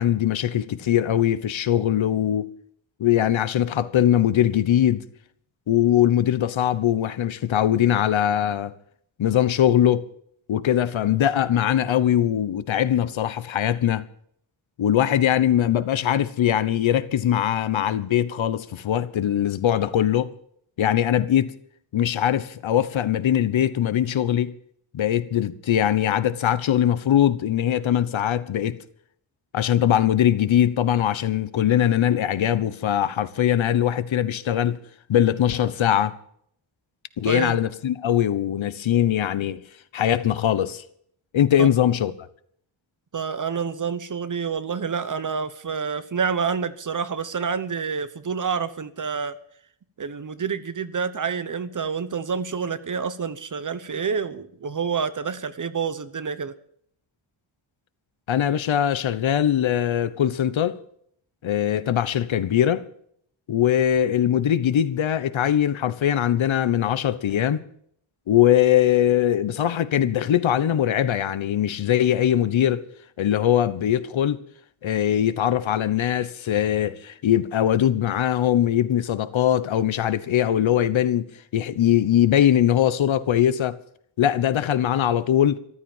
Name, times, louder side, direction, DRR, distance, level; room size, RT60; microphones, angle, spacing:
voice 1, 0.0-2.5 3.0-5.0 5.7-8.7 9.2-10.0 10.5-14.0 14.8-20.3 20.8-21.5 21.9-24.5 24.9-28.8 29.5-34.8 35.1-36.1 37.2-39.6 39.9-40.8 41.3-42.1 58.3-60.8 61.4-62.9 63.5-67.6 68.3-72.8 73.2-74.4 74.8-83.8 84.2-85.6, left 10 dB, 80° left, 1.1 m, -21 dB
voice 2, 37.2-37.6 41.6-41.7 43.1-49.3 50.0-56.5, right 6 dB, 40° right, 1.0 m, -28 dB
14.0 x 13.0 x 7.3 m
wide cardioid pair, 145°, 46 cm